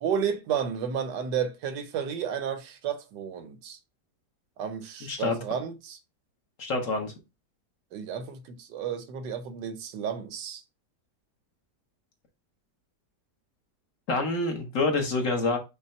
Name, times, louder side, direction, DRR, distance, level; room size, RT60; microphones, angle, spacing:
voice 1, 0.0-3.8 4.6-6.0 7.9-10.6, right 7 dB, 90° right, 1.4 m, -32 dB
voice 2, 6.6-7.1 14.1-15.6, left 3 dB, 55° left, 1.2 m, -27 dB
5.4 x 2.2 x 4.1 m
omnidirectional pair, 1.8 m